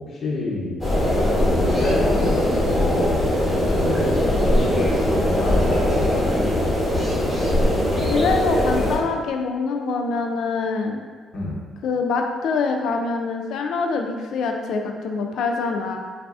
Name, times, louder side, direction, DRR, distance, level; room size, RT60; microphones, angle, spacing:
voice 1, 0.1-6.1 6.4-6.5 11.3-11.6, left 2 dB, 55° left, -4 dB, 0.8 m, -29 dB
sound 1, 0.8-9.0, left 1 dB, 10° left, 1.0 m, -20 dB
voice 2, 8.1-11.0 11.8-16.0, left 4 dB, 75° left, 3 dB, 0.3 m, -24 dB
3.9 x 2.4 x 2.4 m, 1.5 s
cardioid pair, 90°, 0 cm